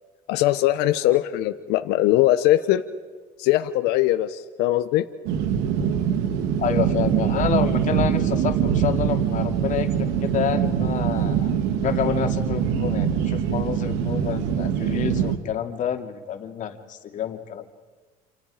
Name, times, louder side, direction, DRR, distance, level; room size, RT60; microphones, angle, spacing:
voice 1, 0.3-2.8 3.4-5.1, left 14 dB, 75° left, 9 dB, 1.3 m, -21 dB
sound 1, 5.3-15.4, right 8 dB, 80° right, 2.5 m, -23 dB
voice 2, 6.6-11.5 11.8-17.6, left 9 dB, 50° left, 5 dB, 2.8 m, -28 dB
28.5 x 28.5 x 5.2 m, 1.4 s
supercardioid pair, 105°, 17 cm